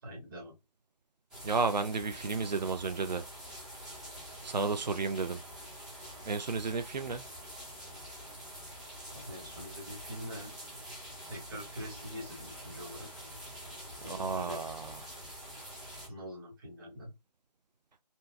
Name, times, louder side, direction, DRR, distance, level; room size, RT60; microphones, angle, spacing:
voice 1, 0.0-0.6 9.1-10.5 11.3-13.1 14.0-14.6 16.1-17.1, equal, 30° right, 1.6 m, -44 dB
sound 1, 1.3-16.1, equal, 5° right, 0.6 m, -46 dB
voice 2, 1.4-3.2 4.4-5.4 6.2-7.2 14.0-15.0, right 4 dB, 85° right, 0.5 m, -32 dB
4.3 x 2.8 x 2.2 m
figure-of-eight pair, 150°, 21 cm